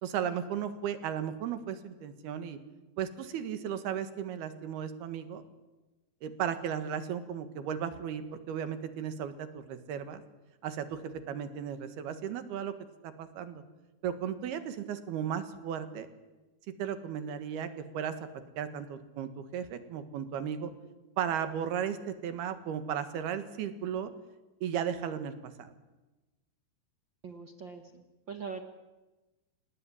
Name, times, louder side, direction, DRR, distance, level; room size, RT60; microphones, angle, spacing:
voice 1, 0.0-2.6 3.0-5.4 6.2-10.2 10.6-11.0 11.3-12.7 13.0-13.6 14.0-16.1 16.8-18.1 18.6-20.7 21.2-24.1 24.6-25.7, right 8 dB, 75° right, 11 dB, 3.5 m, -35 dB
voice 2, 27.2-28.6, right 5 dB, 60° right, 6 dB, 1.2 m, -42 dB
28.0 x 18.5 x 9.9 m, 1.1 s
omnidirectional pair, 4.6 m